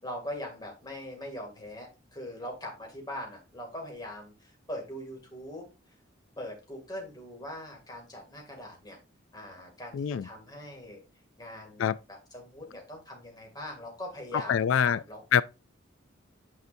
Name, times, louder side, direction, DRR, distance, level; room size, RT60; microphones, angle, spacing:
voice 1, 0.0-5.7 6.4-9.0 9.3-11.0 11.4-15.2, left 1 dB, 20° left, 2.5 m, -41 dB
voice 2, 9.9-10.3 11.8-12.0 14.3-15.0 15.3-15.4, left 8 dB, 75° left, 0.3 m, -25 dB
9.4 x 5.7 x 2.7 m
head